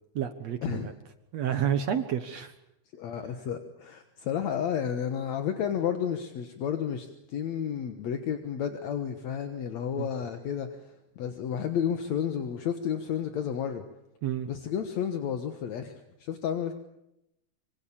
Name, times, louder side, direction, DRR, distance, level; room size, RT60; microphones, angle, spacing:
voice 1, 0.1-0.9 1.3-2.5 10.0-10.1 14.2-14.5, right 9 dB, 65° right, 9 dB, 1.7 m, -29 dB
voice 2, 2.9-10.9 11.2-13.8 14.5-16.7, left 8 dB, 60° left, 7 dB, 2.0 m, -31 dB
25.5 x 25.5 x 7.3 m, 0.84 s
omnidirectional pair, 4.6 m